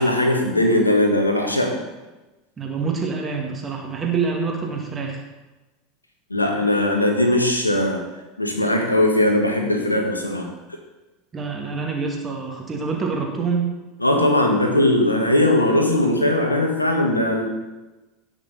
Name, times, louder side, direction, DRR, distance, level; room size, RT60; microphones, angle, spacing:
voice 1, 0.0-1.8 6.3-8.0 8.4-10.5 14.0-17.4, left 1 dB, 85° left, 2 dB, 1.7 m, -19 dB
voice 2, 2.6-5.2 11.3-13.7, right 5 dB, 25° right, 0 dB, 2.2 m, -26 dB
17.5 x 6.1 x 4.2 m, 1.1 s
figure-of-eight pair, 80°, 0 cm